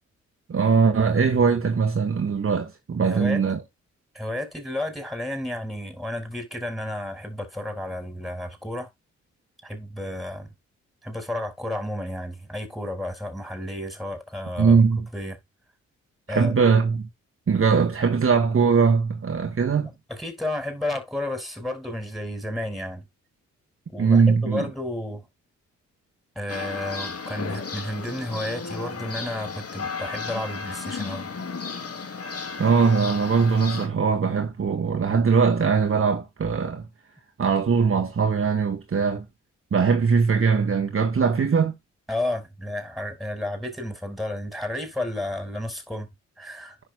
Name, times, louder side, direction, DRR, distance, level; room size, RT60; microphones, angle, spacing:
voice 1, 0.5-3.6 14.6-15.1 16.3-17.1 17.5-19.9 24.0-24.7 32.6-36.8 37.4-39.2 39.7-41.7, right 5 dB, 45° right, 1.5 m, -21 dB
voice 2, 3.0-3.4 4.1-8.9 9.6-10.5 11.0-14.8 15.1-15.4 16.3-16.5 20.1-23.1 23.9-25.3 26.3-31.3 42.1-46.1 46.4-46.8, left 1 dB, ahead, 5.1 m, -32 dB
sound 1, 26.5-33.9, left 5 dB, 50° left, 2.4 m, -34 dB
10.5 x 6.3 x 2.2 m
supercardioid pair, 45°, 32 cm